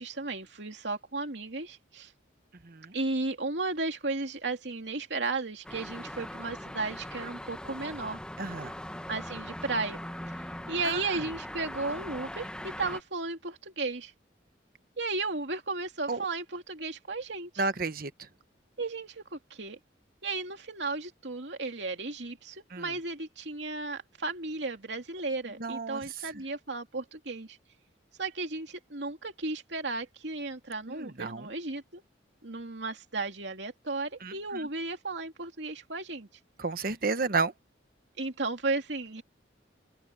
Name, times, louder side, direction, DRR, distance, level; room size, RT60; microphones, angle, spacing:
voice 1, 0.0-2.1 2.9-8.2 9.1-10.0 10.3-10.4 10.7-14.1 15.0-17.6 18.8-19.8 20.2-27.6 28.2-32.0 32.4-36.3 38.2-39.2, right 3 dB, 70° right, 2.8 m, -34 dB
sound 1, 5.6-13.0, left 1 dB, 5° left, 1.0 m, -40 dB
voice 2, 8.4-8.7 10.8-11.0 16.1-16.2 17.6-18.1 22.7-22.8 25.6-26.0 30.9-31.4 34.2-34.7 36.6-37.5, right 4 dB, 55° right, 1.2 m, -31 dB
open air
head